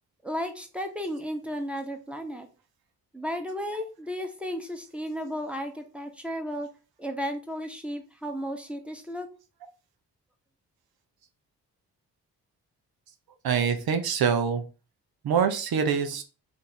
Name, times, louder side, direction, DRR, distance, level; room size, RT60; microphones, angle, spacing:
voice 1, 0.2-2.5 3.1-6.7 7.0-9.3, equal, 5° right, 4 dB, 1.1 m, -34 dB
voice 2, 13.4-14.6 15.2-16.2, right 6 dB, 60° right, 7 dB, 0.7 m, -25 dB
3.5 x 2.6 x 4.2 m, 0.34 s
supercardioid pair, 45°, 42 cm